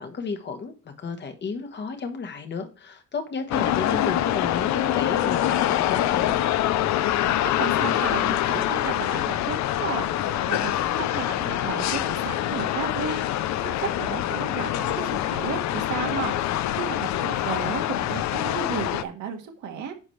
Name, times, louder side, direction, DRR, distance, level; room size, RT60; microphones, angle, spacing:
voice 1, 0.0-6.4, left 5 dB, 40° left, 1.3 m, -32 dB
sound 1, 3.5-19.0, left 12 dB, 70° left, 0.6 m, -25 dB
voice 2, 7.4-19.9, right 7 dB, 80° right, 1.8 m, -34 dB
9.7 x 6.1 x 3.2 m
cardioid pair, 160°, 29 cm